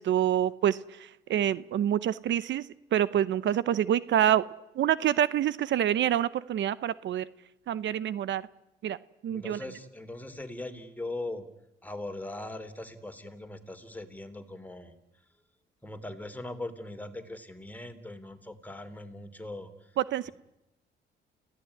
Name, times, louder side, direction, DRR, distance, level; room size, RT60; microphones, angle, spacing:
voice 1, 0.0-4.4 4.8-7.2 7.7-8.4 8.8-9.0 9.2-9.6 20.0-20.3, right 11 dB, 70° right, 17 dB, 0.8 m, -27 dB
voice 2, 9.3-11.5 11.8-14.9 15.8-19.7, left 2 dB, 10° left, 8 dB, 3.2 m, -40 dB
29.0 x 16.5 x 9.7 m, 0.92 s
cardioid pair, 90°, 20 cm